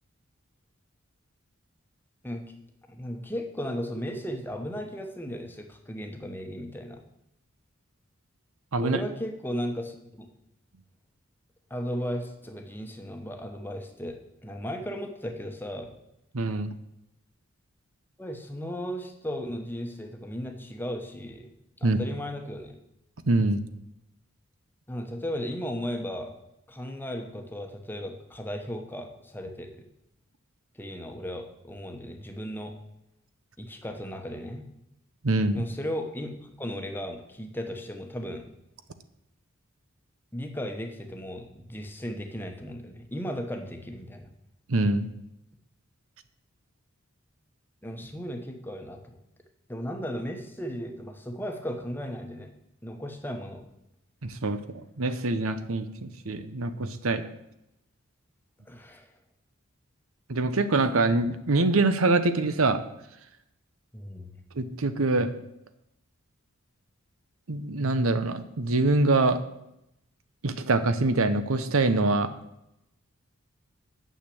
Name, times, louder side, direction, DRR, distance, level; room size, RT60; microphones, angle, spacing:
voice 1, 2.9-7.0 8.8-10.3 11.7-15.9 18.2-22.8 24.9-26.3 26.7-29.8 30.7-32.8 33.6-34.7 35.5-38.5 40.3-44.3 47.8-49.2 49.7-52.5 52.8-53.6 58.6-59.2 63.9-64.4, equal, 10° left, 4 dB, 1.1 m, -36 dB
voice 2, 16.3-16.7 21.8-22.0 23.3-23.6 35.2-35.6 44.7-45.1 54.2-54.6 55.0-57.2 60.3-62.8 64.6-65.3 67.5-69.4 70.4-72.3, right 2 dB, 80° right, 11 dB, 0.9 m, -24 dB
9.3 x 6.6 x 8.5 m, 0.83 s
head